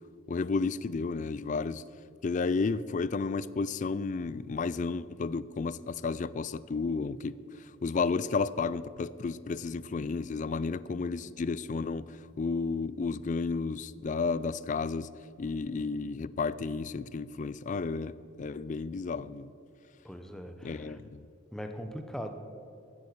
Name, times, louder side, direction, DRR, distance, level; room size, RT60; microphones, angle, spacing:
voice 1, 0.3-1.8 2.2-7.4 7.8-12.1 12.4-15.1 15.4-19.5 20.6-21.2, left 4 dB, 40° left, 18 dB, 0.3 m, -32 dB
voice 2, 20.0-21.0 21.5-22.3, equal, 5° left, 6 dB, 0.8 m, -40 dB
15.0 x 8.7 x 6.6 m, 2.7 s
head